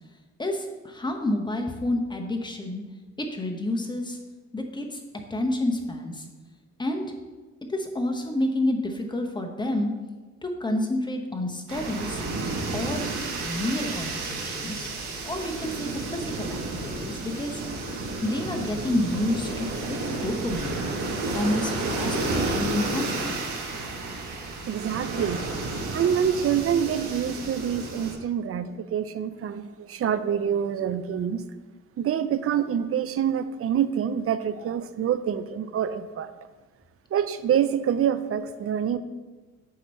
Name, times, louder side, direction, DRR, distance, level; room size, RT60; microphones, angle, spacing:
voice 1, 0.4-2.8 3.2-4.2 4.5-5.0 5.3-6.2 6.8-7.1 7.7-9.9 10.4-12.2 12.7-13.1 13.4-14.9 15.2-17.6 18.2-20.8 21.3-22.2 22.4-23.3, left 1 dB, 15° left, 3 dB, 1.0 m, -29 dB
sound 1, 11.7-28.1, right 3 dB, 80° right, 1.4 m, -31 dB
voice 2, 24.7-25.4 25.9-31.4 32.0-36.3 37.1-39.0, right 8 dB, 50° right, 12 dB, 0.5 m, -26 dB
8.4 x 3.0 x 5.5 m, 1.3 s
cardioid pair, 90°, 30 cm